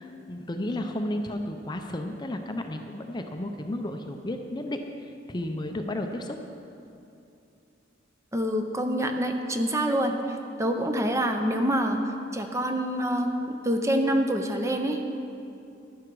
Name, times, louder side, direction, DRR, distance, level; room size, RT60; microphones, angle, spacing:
voice 1, 0.0-6.4, left 1 dB, 25° left, 5 dB, 0.6 m, -33 dB
voice 2, 8.3-10.1 10.6-12.0 12.3-15.1, equal, 15° right, 5 dB, 0.7 m, -26 dB
11.0 x 11.0 x 4.7 m, 2.7 s
head